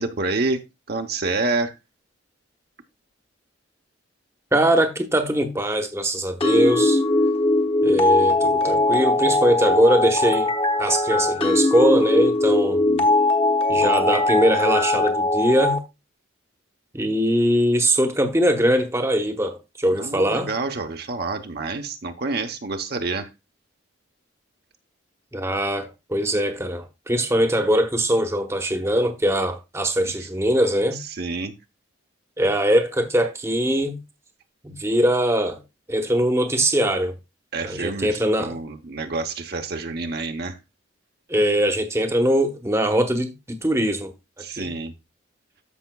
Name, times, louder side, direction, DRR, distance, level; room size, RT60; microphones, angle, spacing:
voice 1, 0.0-1.7 12.8-13.1 19.9-23.3 30.9-31.5 37.5-40.6 44.4-44.9, right 3 dB, 50° right, 0.8 m, -28 dB
voice 2, 4.5-7.0 7.8-10.5 10.8-12.8 13.7-15.8 16.9-20.5 25.3-31.0 32.4-34.0 34.6-35.6 35.9-37.1 37.6-38.5 41.3-44.1 44.6-44.7, right 1 dB, 15° right, 0.9 m, -21 dB
sound 1, 6.4-15.8, left 2 dB, 30° left, 1.0 m, -20 dB
13.5 x 5.7 x 2.3 m
head